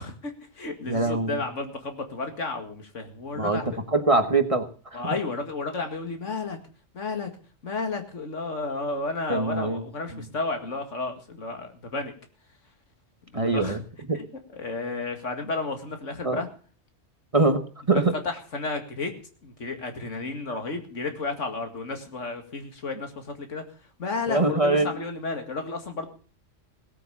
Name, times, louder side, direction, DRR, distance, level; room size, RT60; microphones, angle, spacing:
voice 1, 0.0-3.8 4.9-6.6 6.9-7.3 7.6-12.1 13.3-13.8 14.1-14.2 14.5-16.5 17.9-19.1 19.4-23.6 24.0-26.1, left 3 dB, 80° left, 5 dB, 2.5 m, -32 dB
voice 2, 0.9-1.4 3.3-3.6 3.9-4.7 4.9-5.0 9.3-9.8 10.1-10.2 13.3-13.8 14.1-14.2 16.2-16.4 17.3-18.1 24.3-24.9, right 3 dB, 30° right, 8 dB, 1.2 m, -23 dB
17.5 x 8.4 x 7.1 m, 0.41 s
omnidirectional pair, 1.3 m